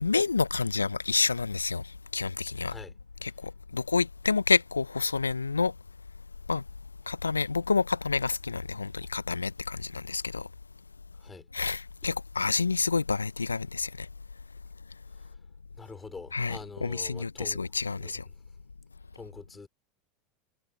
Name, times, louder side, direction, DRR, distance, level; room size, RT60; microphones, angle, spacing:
voice 1, 0.0-2.7 3.2-5.7 6.5-6.6 7.1-10.5 11.5-14.1 16.3-18.2, left 4 dB, 90° left, 0.6 m, -29 dB
voice 2, 15.8-17.6 17.9-18.1 19.1-19.7, left 4 dB, 15° left, 3.2 m, -45 dB
figure-of-eight pair, 80°, 0 cm